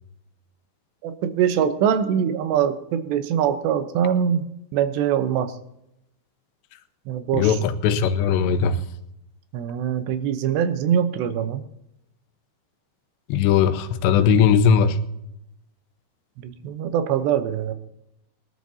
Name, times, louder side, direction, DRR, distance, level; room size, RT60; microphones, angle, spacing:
voice 1, 1.0-4.5 4.7-5.5 7.1-7.6 9.5-11.6 16.4-17.7, right 8 dB, 80° right, 9 dB, 3.1 m, -23 dB
voice 2, 7.3-8.8 13.3-15.0, left 7 dB, 85° left, 10 dB, 3.0 m, -19 dB
21.0 x 12.5 x 2.8 m, 0.85 s
omnidirectional pair, 5.0 m